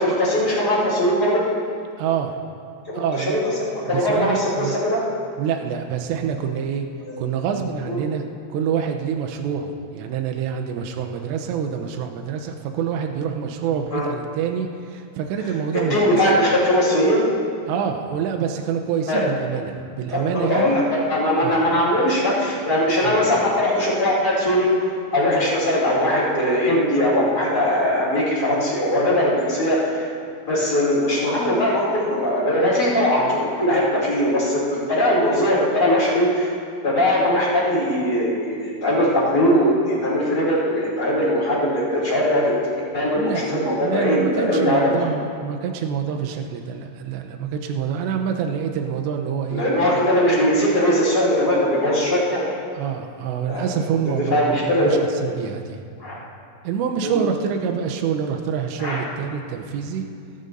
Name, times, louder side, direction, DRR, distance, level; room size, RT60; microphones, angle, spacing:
voice 1, 0.0-1.4 2.9-3.5 3.8-5.0 7.1-7.2 7.9-8.0 13.9-14.1 15.9-17.3 19.1-19.3 20.1-24.7 25.1-30.1 30.5-36.5 36.8-42.5 42.9-44.9 49.5-52.5 53.5-53.6 54.3-55.0 56.0-56.2 57.0-57.2 58.8-59.0, equal, 25° left, -8 dB, 2.3 m, -20 dB
voice 2, 2.0-2.4 3.0-3.4 3.9-4.8 5.4-6.8 7.2-8.2 8.5-16.0 17.7-20.8 21.4-21.6 23.0-23.2 43.2-49.7 52.7-55.8 56.6-60.0, right 7 dB, 85° right, 4 dB, 2.6 m, -26 dB
18.0 x 12.0 x 2.6 m, 2.3 s
omnidirectional pair, 5.8 m